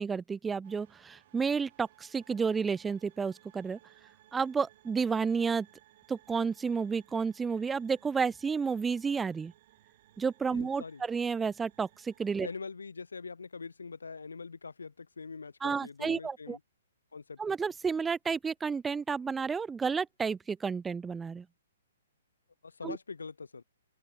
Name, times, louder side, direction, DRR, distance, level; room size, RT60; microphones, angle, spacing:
voice 1, 0.0-3.8 4.3-5.7 6.1-9.5 10.2-12.5 15.6-16.6 17.4-21.4 22.8-23.0, right 5 dB, 10° right, 0.8 m, -31 dB
sound 1, 0.6-12.6, right 14 dB, 50° right, 5.6 m, -62 dB
voice 2, 10.5-11.0 12.4-16.6 17.1-17.4 22.6-23.6, left 4 dB, 85° left, 3.9 m, -43 dB
open air
hypercardioid pair, 130°, 0 cm